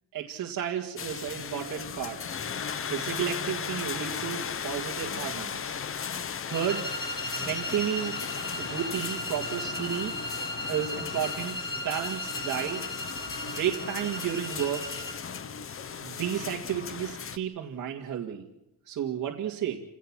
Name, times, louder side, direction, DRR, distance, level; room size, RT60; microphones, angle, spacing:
voice 1, 0.1-2.2 2.9-5.8 6.5-6.9 7.4-8.1 8.6-10.1 10.7-12.8 13.4-15.0 16.0-18.4 18.9-19.8, right 9 dB, 60° right, -1 dB, 2.1 m, -32 dB
sound 1, 1.0-17.4, left 7 dB, 40° left, 1.0 m, -36 dB
sound 2, 6.5-15.2, equal, 15° left, 2.6 m, -36 dB
29.0 x 17.5 x 6.2 m, 0.92 s
cardioid pair, 155°, 35 cm